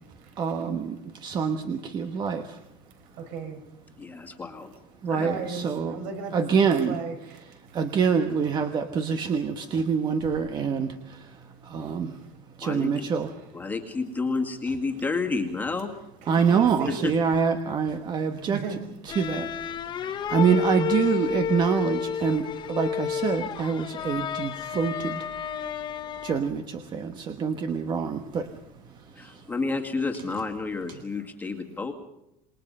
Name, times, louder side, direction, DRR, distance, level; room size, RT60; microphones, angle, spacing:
voice 1, 0.4-2.6 5.0-6.0 6.3-7.0 7.7-11.4 11.6-12.2 12.6-13.3 16.3-18.6 19.0-19.5 20.0-25.2 26.2-28.5 29.2-29.4, right 6 dB, 25° right, 7 dB, 1.3 m, -26 dB
voice 2, 3.2-3.6 5.0-7.4 16.3-17.1 18.4-18.8, right 5 dB, 60° right, 6 dB, 5.6 m, -36 dB
voice 3, 4.0-4.7 5.1-5.3 12.6-13.1 13.5-15.9 16.9-17.1 29.2-31.9, left 4 dB, 10° left, 3 dB, 2.1 m, -30 dB
sound 1, 19.1-26.6, left 8 dB, 30° left, 1.2 m, -31 dB
27.5 x 21.0 x 5.5 m, 0.82 s
cardioid pair, 170°, 16 cm